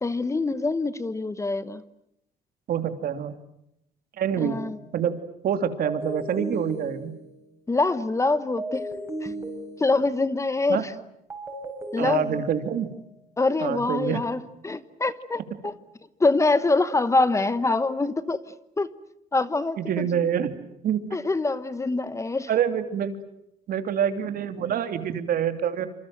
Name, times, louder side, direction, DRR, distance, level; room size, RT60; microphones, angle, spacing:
voice 1, 0.0-1.8 4.4-4.8 7.7-8.8 9.2-9.3 9.8-10.9 11.9-12.4 13.4-15.7 16.2-18.4 18.8-18.9 19.3-20.1 21.1-22.5, left 3 dB, 15° left, 14 dB, 1.1 m, -24 dB
voice 2, 2.7-3.3 4.2-4.6 4.9-7.2 10.7-10.8 12.0-12.9 13.6-14.2 19.8-20.6 20.8-21.2 22.5-23.2 23.7-25.9, right 8 dB, 60° right, 9 dB, 2.9 m, -26 dB
sound 1, 4.5-4.8 5.8-7.6 8.6-10.3 11.3-13.0, right 1 dB, 15° right, 6.9 m, -35 dB
27.5 x 27.0 x 7.7 m, 0.78 s
cardioid pair, 110°, 17 cm